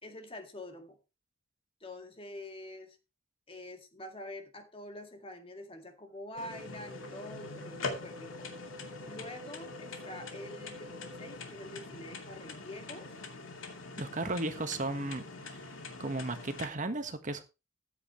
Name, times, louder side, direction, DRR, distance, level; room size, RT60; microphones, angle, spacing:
voice 1, 0.0-1.0 1.8-3.0 3.5-8.5 9.0-13.1, left 1 dB, 25° left, 6 dB, 2.0 m, -46 dB
sound 1, 6.3-11.4, left 1 dB, 20° right, 3.2 m, -49 dB
sound 2, 6.4-16.7, left 3 dB, 70° left, 2.4 m, -44 dB
voice 2, 14.0-15.6 16.0-17.4, right 2 dB, 40° right, 8 dB, 1.4 m, -35 dB
14.0 x 9.8 x 3.1 m, 0.28 s
head